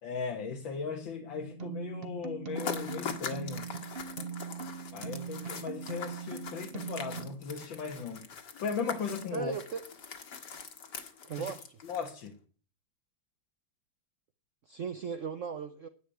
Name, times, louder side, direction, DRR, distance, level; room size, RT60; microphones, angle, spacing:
voice 1, 0.0-3.7 4.9-8.3 8.6-9.5 11.4-11.5 11.8-12.4, left 5 dB, 90° left, 2 dB, 2.2 m, -37 dB
sound 1, 1.6-7.3, right 7 dB, 35° right, 1.2 m, -41 dB
sound 2, 2.5-12.3, left 6 dB, 65° left, 2.3 m, -42 dB
voice 2, 9.3-9.8 11.2-11.6 14.7-15.9, right 7 dB, 55° right, 9 dB, 0.9 m, -37 dB
10.5 x 8.7 x 8.9 m, 0.42 s
omnidirectional pair, 2.0 m